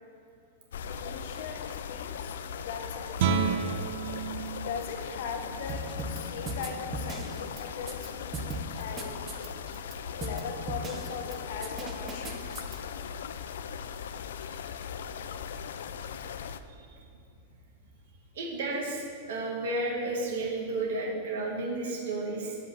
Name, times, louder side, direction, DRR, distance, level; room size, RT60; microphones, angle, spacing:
sound 1, 0.7-16.6, left 7 dB, 90° left, 0.5 m, -39 dB
voice 1, 0.8-3.8 4.5-8.3 8.8-9.1 10.2-12.5, left 6 dB, 55° left, 4 dB, 1.1 m, -40 dB
Guitar, 3.1-8.7, right 6 dB, 55° right, 0.7 m, -34 dB
sound 2, 5.7-6.2 6.5-8.1 8.3-9.9 10.2-10.4 10.7-11.4 11.6-12.8, right 3 dB, 15° right, 0.7 m, -37 dB
voice 2, 14.3-14.7 16.8-16.9 18.3-22.6, right 2 dB, 70° right, -2 dB, 2.1 m, -33 dB
8.2 x 5.4 x 7.5 m, 2.6 s
supercardioid pair, 170°, 0 cm